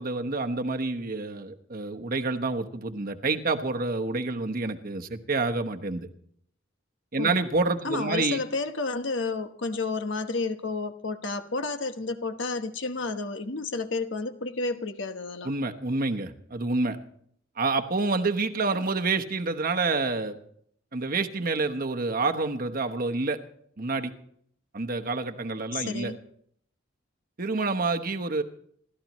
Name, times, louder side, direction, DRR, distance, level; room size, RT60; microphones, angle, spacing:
voice 1, 0.0-6.1 7.1-8.4 15.4-17.0 17.6-20.4 20.9-23.4 23.8-24.1 24.7-26.1 27.4-28.4, right 3 dB, 45° right, 6 dB, 1.1 m, -28 dB
voice 2, 7.8-15.5 25.7-26.2, left 3 dB, 65° left, 7 dB, 1.1 m, -31 dB
28.5 x 13.5 x 3.1 m, 0.65 s
head